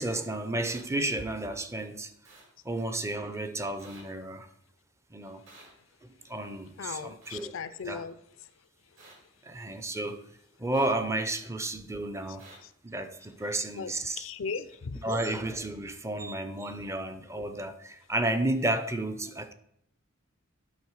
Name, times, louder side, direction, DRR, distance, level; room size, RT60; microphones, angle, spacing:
voice 1, 0.0-2.1 2.6-4.5 5.1-5.4 6.2-7.5 7.8-8.0 9.4-10.2 10.6-12.4 12.8-14.3 15.0-19.5, right 1 dB, 15° right, 0.6 m, -32 dB
sound 1, 0.6-0.8 2.2-2.4 3.8-4.0 5.5-5.7 7.2-7.4 9.0-9.1 10.7-10.9 12.4-12.6, right 2 dB, 70° right, 3.5 m, -51 dB
voice 2, 6.8-8.1 13.8-15.0 17.4-17.5, left 5 dB, 70° left, 0.5 m, -37 dB
11.0 x 4.2 x 4.8 m
head